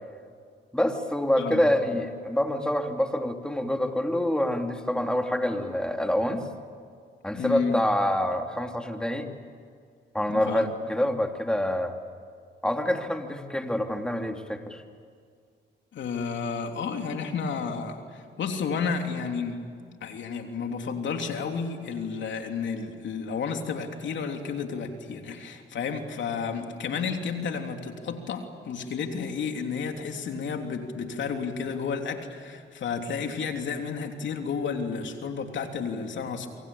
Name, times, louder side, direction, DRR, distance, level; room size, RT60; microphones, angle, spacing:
voice 1, 0.7-6.4 7.2-9.3 10.1-11.9 12.6-14.8, left 1 dB, 5° left, 4 dB, 3.0 m, -26 dB
voice 2, 7.4-7.8 10.3-10.7 15.9-19.6 20.0-36.5, left 5 dB, 70° left, 4 dB, 3.3 m, -31 dB
27.5 x 24.5 x 8.7 m, 2.2 s
cardioid pair, 75°, 20 cm